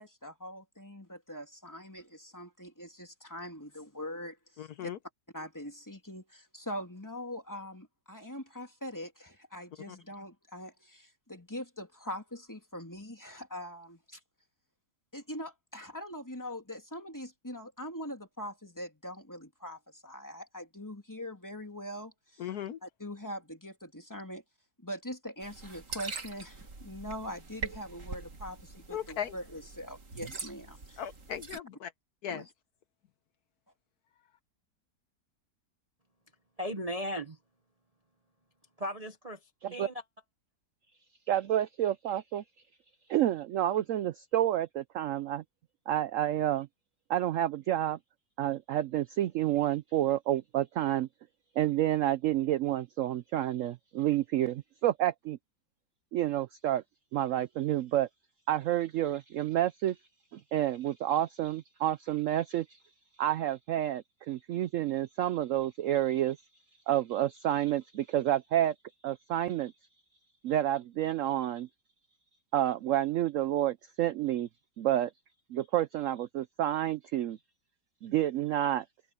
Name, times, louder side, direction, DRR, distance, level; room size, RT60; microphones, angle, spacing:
voice 1, 0.0-4.9 5.3-14.2 15.1-22.5 22.8-24.4 24.8-31.0 32.3-32.5, equal, 10° left, 3.0 m, -42 dB
voice 2, 4.6-5.0 22.4-22.8 28.9-29.4 31.0-31.9 32.2-32.4, left 9 dB, 65° left, 1.3 m, -37 dB
sound 1, 25.4-31.6, right 4 dB, 45° right, 2.4 m, -43 dB
voice 3, 36.6-37.4 38.8-40.0, equal, 25° right, 1.0 m, -37 dB
voice 4, 41.3-42.4 43.1-45.4 45.9-46.7 47.1-48.0 48.4-51.1 51.6-55.4 56.1-56.8 57.1-58.1 58.5-60.0 60.3-62.8 63.2-66.4 66.9-68.7 69.0-69.7 70.4-71.7 72.5-74.5 74.8-75.1 75.5-77.4 78.0-78.8, right 12 dB, 75° right, 0.7 m, -29 dB
omnidirectional pair, 1.9 m